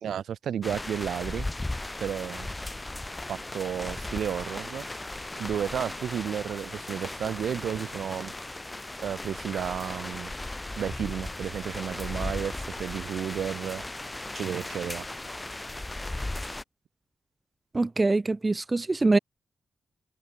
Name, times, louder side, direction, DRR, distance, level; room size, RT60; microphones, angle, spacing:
voice 1, 0.0-1.5 2.0-2.5 3.3-4.8 5.4-8.3 9.0-10.3 10.8-13.8 14.3-15.0, right 9 dB, 80° right, 1.1 m, -32 dB
sound 1, 0.6-16.6, left 2 dB, 20° left, 7.8 m, -36 dB
voice 2, 17.7-19.2, right 3 dB, 30° right, 0.7 m, -24 dB
cardioid pair, 50°, 0 cm